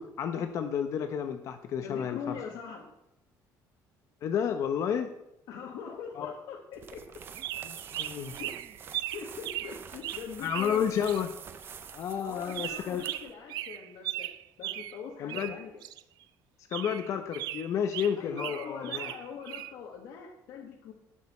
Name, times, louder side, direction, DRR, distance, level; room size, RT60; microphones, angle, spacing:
voice 1, 0.0-2.2 4.2-5.1 6.2-6.3 7.7-8.3 10.4-11.3 11.9-13.0 15.2-15.5 16.7-19.1, left 8 dB, 45° left, 7 dB, 0.8 m, -31 dB
voice 2, 1.8-2.9 5.5-7.0 8.3-8.5 8.8-10.9 12.2-14.3 14.6-15.9 18.1-20.9, left 6 dB, 70° left, -1 dB, 1.5 m, -42 dB
sound 1, 6.7-13.3, right 7 dB, 30° right, 0.6 m, -47 dB
sound 2, 7.4-11.3 12.5-15.0 15.3-16.2 16.7-19.7, right 14 dB, 70° right, 0.4 m, -38 dB
18.0 x 6.4 x 4.3 m, 0.86 s
cardioid pair, 180°, 7 cm